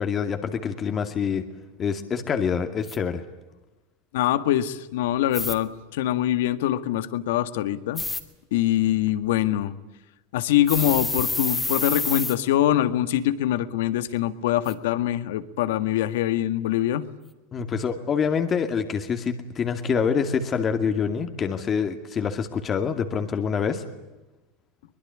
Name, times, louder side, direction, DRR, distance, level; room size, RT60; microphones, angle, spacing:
voice 1, 0.0-1.4 1.8-3.2 17.5-23.8, left 6 dB, 30° left, 6 dB, 2.4 m, -26 dB
sound 1, 2.9-3.0 5.3-5.5 8.0-8.2 10.7-12.3 14.7-14.8, left 3 dB, 10° left, 2.9 m, -28 dB
voice 2, 4.1-8.0 8.5-9.7 10.3-17.1, left 12 dB, 75° left, 12 dB, 1.7 m, -24 dB
23.5 x 21.0 x 10.0 m, 1.1 s
hypercardioid pair, 105°, 0 cm